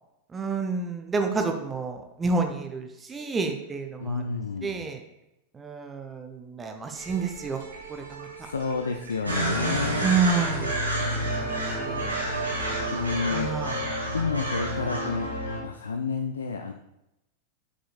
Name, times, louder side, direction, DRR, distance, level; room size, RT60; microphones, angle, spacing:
voice 1, 0.3-4.2 4.6-5.0 5.5-7.6 7.9-8.3 10.0-10.9 11.2-12.2 13.3-13.8, right 4 dB, 15° right, 5 dB, 0.8 m, -29 dB
voice 2, 4.0-4.9 8.4-10.1 12.9-13.6 14.1-15.3 15.6-16.7, left 4 dB, 70° left, 5 dB, 0.4 m, -30 dB
sound 1, 6.9-13.6, right 5 dB, 50° right, 2.4 m, -43 dB
sound 2, 9.2-15.6, right 1 dB, 85° right, 1.8 m, -29 dB
7.7 x 6.6 x 2.4 m, 0.88 s
figure-of-eight pair, 90°, 0 cm